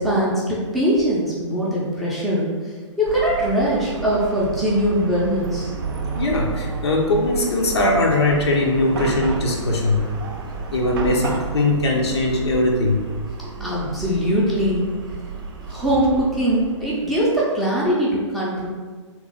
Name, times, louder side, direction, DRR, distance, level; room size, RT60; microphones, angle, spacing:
voice 1, 0.0-5.7 13.6-14.9 15.6-18.7, equal, ahead, -7 dB, 0.6 m, -21 dB
Chatter / Car passing by / Traffic noise roadway noise, 3.0-17.3, right 4 dB, 45° right, 0.6 m, -32 dB
voice 2, 6.2-10.1 10.7-13.0, left 2 dB, 55° left, 0 dB, 0.8 m, -20 dB
3.3 x 3.1 x 3.7 m, 1.5 s
figure-of-eight pair, 120°, 16 cm